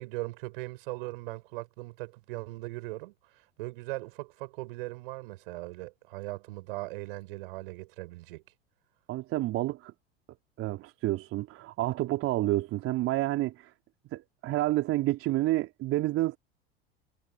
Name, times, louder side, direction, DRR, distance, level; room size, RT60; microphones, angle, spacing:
voice 1, 0.0-8.4, right 21 dB, 60° right, 7.0 m, -39 dB
voice 2, 9.1-9.9 10.6-13.7 14.1-16.4, right 17 dB, 45° right, 3.9 m, -29 dB
figure-of-eight pair, 75°, 31 cm